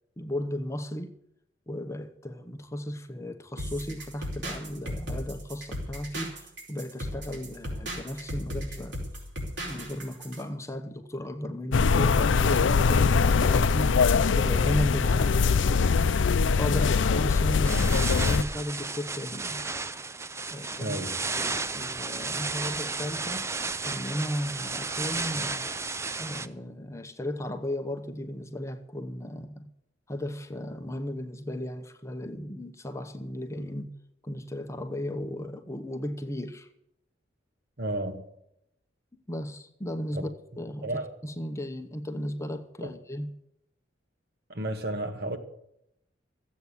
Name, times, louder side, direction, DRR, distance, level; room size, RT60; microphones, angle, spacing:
voice 1, 0.2-1.1 1.7-9.0 9.6-15.8 16.6-19.6 20.5-20.9 21.4-23.5 23.8-25.7 26.2-29.7 30.1-33.9 34.2-36.7 39.3-40.3 40.6-40.9 41.2-43.3, left 1 dB, 15° left, 0.9 m, -35 dB
sound 1, 3.6-10.4, equal, 70° right, 4.8 m, -37 dB
sound 2, 11.7-18.4, left 5 dB, 80° left, 0.5 m, -22 dB
sound 3, 17.6-26.5, right 3 dB, 15° right, 0.5 m, -33 dB
voice 2, 20.8-21.2 37.8-38.3 40.1-40.3 40.8-41.1 42.8-42.9 44.5-45.4, right 1 dB, 55° right, 1.7 m, -32 dB
14.5 x 8.4 x 8.3 m
head